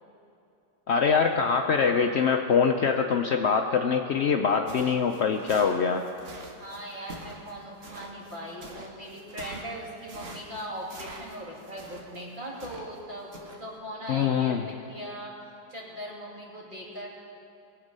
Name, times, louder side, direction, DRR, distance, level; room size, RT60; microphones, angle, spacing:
voice 1, 0.9-6.1 14.1-14.6, left 6 dB, 85° left, 4 dB, 0.5 m, -24 dB
sound 1, 4.6-13.0 13.3-13.6, right 2 dB, 45° right, 1.5 m, -45 dB
voice 2, 6.6-15.4 15.7-17.1, equal, 25° right, -3 dB, 2.4 m, -39 dB
21.0 x 8.1 x 5.3 m, 2.6 s
omnidirectional pair, 1.9 m